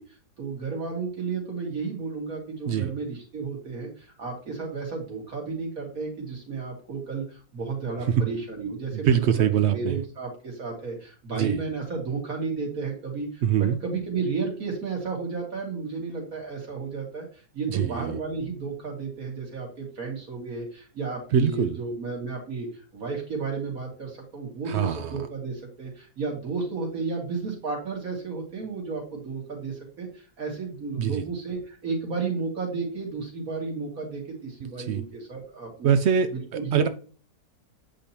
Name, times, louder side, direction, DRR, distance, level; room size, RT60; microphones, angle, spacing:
voice 1, 0.4-22.7 22.9-36.0 36.3-36.9, right 4 dB, 60° right, 0 dB, 2.6 m, -33 dB
voice 2, 8.9-10.0 11.4-11.6 13.4-13.8 17.7-18.2 21.3-21.8 24.7-25.1 31.0-31.2 34.8-35.0 35.8-36.3 36.7-36.9, right 8 dB, 85° right, 9 dB, 0.5 m, -23 dB
8.4 x 5.2 x 2.9 m, 0.41 s
omnidirectional pair, 1.8 m